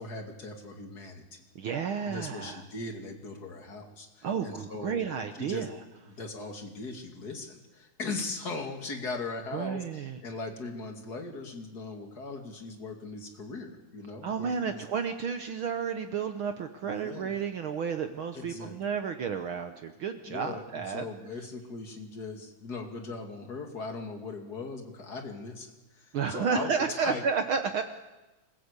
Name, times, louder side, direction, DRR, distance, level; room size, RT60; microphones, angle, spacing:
voice 1, 0.0-1.4 2.0-5.7 6.1-14.8 16.8-17.4 18.3-18.8 20.2-27.2, left 3 dB, 30° left, 3 dB, 2.6 m, -39 dB
voice 2, 1.5-2.6 4.2-5.8 9.5-10.2 14.2-21.1 26.1-27.8, right 6 dB, 80° right, 8 dB, 1.1 m, -31 dB
27.0 x 16.0 x 8.2 m, 1.1 s
omnidirectional pair, 3.6 m